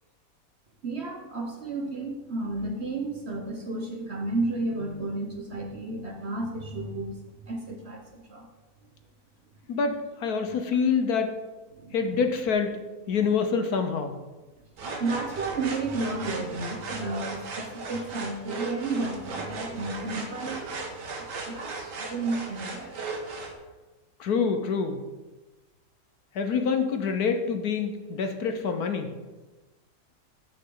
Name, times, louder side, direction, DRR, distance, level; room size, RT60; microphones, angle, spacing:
voice 1, 0.8-7.2 7.4-8.5 11.7-11.9 15.0-20.7 21.2-23.0, right 2 dB, 45° right, 2 dB, 1.1 m, -32 dB
voice 2, 9.7-11.3 11.9-12.8 13.1-14.2 24.2-25.0 26.3-29.1, left 5 dB, 65° left, 6 dB, 1.3 m, -26 dB
sound 1, 14.8-23.5, right 3 dB, 80° right, 1.9 m, -37 dB
14.5 x 6.6 x 3.9 m, 1.2 s
omnidirectional pair, 1.8 m